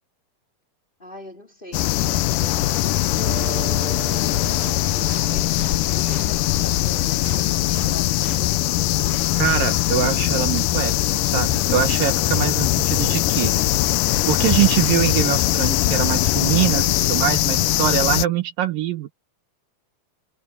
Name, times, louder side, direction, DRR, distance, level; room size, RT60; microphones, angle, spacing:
voice 1, 1.0-8.7, left 1 dB, 15° left, 3.2 m, -42 dB
sound 1, 1.7-18.3, left 16 dB, 80° left, 2.0 m, -21 dB
sound 2, 3.1-9.2, right 5 dB, 30° right, 3.8 m, -40 dB
sound 3, 4.6-6.6 7.2-8.8, right 7 dB, 50° right, 2.9 m, -43 dB
voice 2, 9.3-13.5 14.3-19.1, right 11 dB, 70° right, 2.7 m, -23 dB
omnidirectional pair, 4.2 m